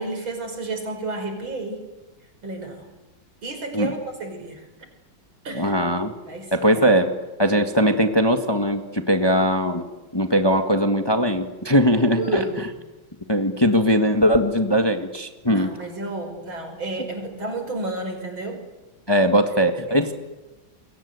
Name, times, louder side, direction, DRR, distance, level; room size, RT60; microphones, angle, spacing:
voice 1, 0.0-1.9 2.4-2.9 3.4-4.7 5.4-5.8 6.3-6.7 12.2-12.6 15.5-18.6 19.9-20.0, right 2 dB, 75° right, 5 dB, 6.1 m, -31 dB
voice 2, 5.5-6.1 6.5-7.1 7.4-9.8 10.1-12.4 13.3-15.7 19.1-20.1, equal, 15° left, 6 dB, 1.5 m, -20 dB
28.0 x 22.5 x 8.2 m, 1.1 s
omnidirectional pair, 2.2 m